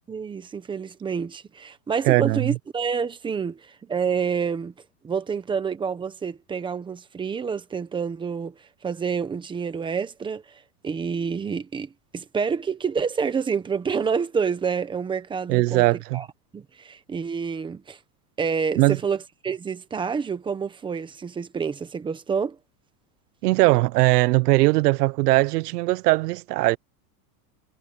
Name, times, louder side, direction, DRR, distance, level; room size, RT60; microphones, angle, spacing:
voice 1, 0.1-4.7 5.0-8.5 8.8-10.4 10.8-15.8 16.1-16.3 16.5-18.0 18.4-19.2 19.4-22.6, right 6 dB, 10° right, 0.9 m, -28 dB
voice 2, 2.0-2.6 15.5-16.2 18.8-19.0 23.4-26.8, right 20 dB, 70° right, 0.8 m, -20 dB
supercardioid pair, 165°, 49 cm